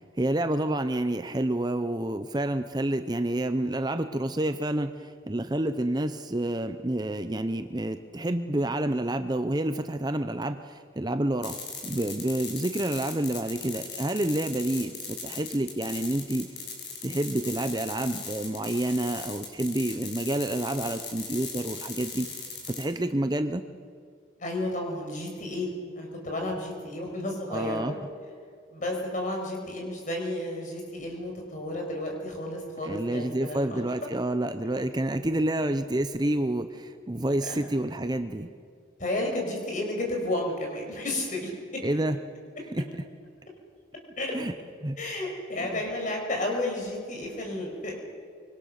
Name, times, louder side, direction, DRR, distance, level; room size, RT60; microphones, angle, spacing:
voice 1, 0.2-11.6 11.8-16.5 17.0-23.6 27.5-27.9 32.8-38.5 41.8-42.2 42.7-42.9 44.3-44.5 44.8-45.0 45.6-45.7, right 1 dB, 20° right, 9 dB, 0.7 m, -29 dB
sound 1, 11.4-22.8, left 5 dB, 55° left, 6.8 m, -38 dB
voice 2, 24.4-28.0 28.7-33.8 37.4-37.6 39.0-41.8 44.2-44.4 45.0-48.0, left 1 dB, 40° left, 1 dB, 5.8 m, -32 dB
25.5 x 24.0 x 6.6 m, 2.2 s
head